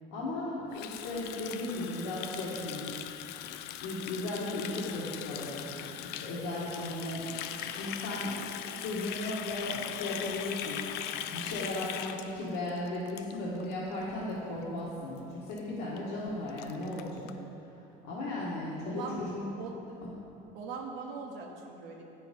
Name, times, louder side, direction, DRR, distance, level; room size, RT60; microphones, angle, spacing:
voice 1, 0.1-2.9 3.8-5.7 6.0-8.4 8.6-10.8 11.3-17.3 18.0-19.4 20.0-20.1, left 2 dB, 80° left, -8 dB, 1.6 m, -36 dB
Water tap faucet, 0.7-13.7 14.0-14.3 14.6-14.9 15.2-15.3 15.5-15.6 16.0-16.1 16.3-17.3, left 10 dB, 60° left, 0.4 m, -40 dB
voice 2, 18.8-19.2 19.6-19.9 20.5-22.0, right 5 dB, 70° right, 1 dB, 1.2 m, -41 dB
8.7 x 6.0 x 5.2 m, 3.0 s
cardioid pair, 120°, 19 cm